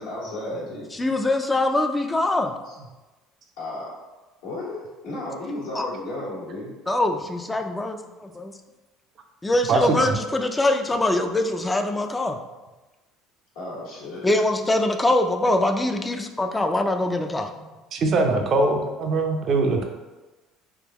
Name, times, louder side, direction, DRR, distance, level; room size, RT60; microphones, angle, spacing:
voice 1, 0.0-0.9 3.6-3.9 4.4-6.7 9.7-9.9 13.5-14.3 18.3-18.6, left 1 dB, 85° left, -7 dB, 1.3 m, -34 dB
voice 2, 0.9-2.5 5.7-5.9 6.9-8.5 9.4-12.4 14.2-17.5, left 1 dB, 15° left, 6 dB, 0.4 m, -23 dB
voice 3, 9.7-10.0 17.9-19.9, right 3 dB, 50° right, 4 dB, 0.6 m, -22 dB
3.6 x 2.9 x 3.0 m, 1.1 s
supercardioid pair, 90°, 0 cm